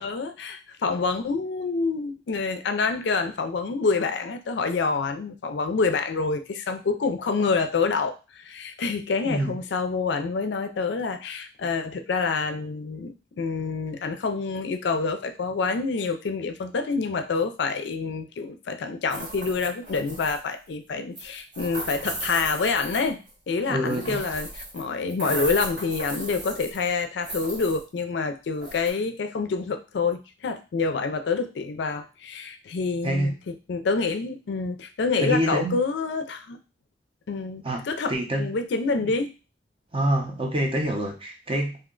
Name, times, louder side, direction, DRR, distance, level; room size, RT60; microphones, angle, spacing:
voice 1, 0.0-23.2 23.5-36.6 37.3-39.3, left 4 dB, 70° left, 7 dB, 0.4 m, -27 dB
voice 2, 9.2-9.6 23.7-24.2 33.0-33.3 35.2-35.8 37.6-38.5 38.9-39.1 39.9-41.8, right 1 dB, 30° right, 2 dB, 0.6 m, -26 dB
sound 1, 19.1-20.5 21.2-23.3 23.8-24.8 25.1-26.9 27.2-27.8 28.6-28.9, right 1 dB, 70° right, 1.4 m, -35 dB
2.7 x 2.1 x 3.6 m, 0.31 s
head